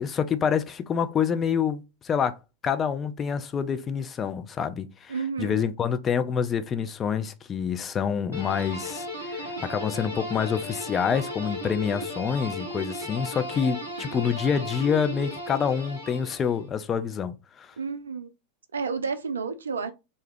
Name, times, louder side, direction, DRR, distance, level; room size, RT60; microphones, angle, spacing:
voice 1, 0.0-2.4 2.6-17.7, left 7 dB, 25° left, 0.4 m, -27 dB
voice 2, 5.1-5.7 17.8-18.3 18.7-19.9, right 5 dB, 70° right, 0.4 m, -31 dB
sound 1, 8.3-16.7, left 1 dB, 85° left, 1.1 m, -35 dB
2.7 x 2.2 x 3.3 m
figure-of-eight pair, 90°, 0 cm